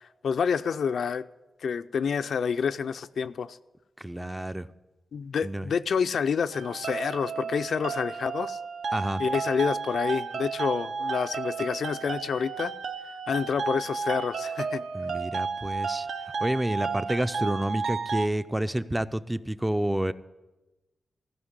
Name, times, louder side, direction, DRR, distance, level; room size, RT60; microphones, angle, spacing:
voice 1, 0.2-1.2 1.6-3.6 5.1-8.6 9.2-12.7 13.3-14.9, left 6 dB, 75° left, 0.4 m, -28 dB
voice 2, 4.0-4.7 5.4-5.7 8.9-9.2 14.9-16.1 16.4-20.1, right 1 dB, 10° right, 0.3 m, -29 dB
sound 1, 6.5-18.3, right 5 dB, 75° right, 0.7 m, -32 dB
15.5 x 5.2 x 9.6 m
wide cardioid pair, 135°, 0 cm